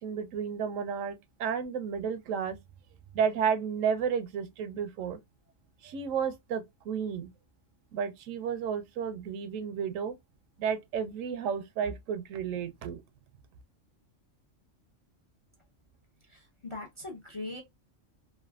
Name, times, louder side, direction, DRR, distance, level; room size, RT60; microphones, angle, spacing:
voice 1, 0.0-2.6 3.1-5.2 5.8-7.3 7.9-10.2 10.6-13.0, right 7 dB, 80° right, 1.0 m, -32 dB
voice 2, 16.3-17.6, left 2 dB, 40° left, 0.4 m, -40 dB
3.2 x 2.3 x 2.2 m
omnidirectional pair, 1.3 m